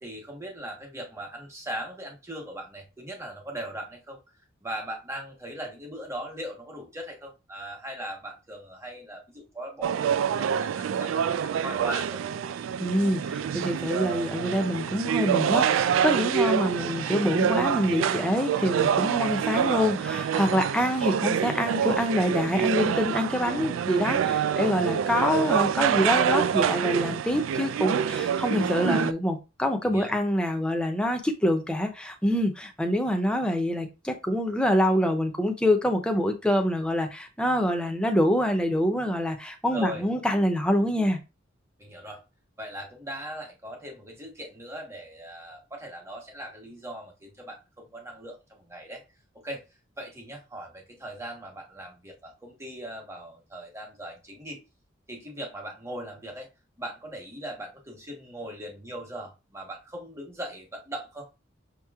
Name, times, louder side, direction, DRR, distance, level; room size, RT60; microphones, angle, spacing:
voice 1, 0.0-4.2 4.6-12.2 16.8-17.2 20.7-21.3 23.4-23.9 29.8-30.2 39.7-40.0 41.8-42.2 42.6-49.0 49.4-49.6 50.0-54.6 55.1-56.5 56.8-61.3, right 1 dB, 15° right, 1.1 m, -39 dB
sound 1, 9.8-29.1, right 8 dB, 85° right, 0.3 m, -26 dB
voice 2, 12.8-41.2, equal, 5° left, 0.6 m, -26 dB
6.3 x 2.9 x 2.4 m
head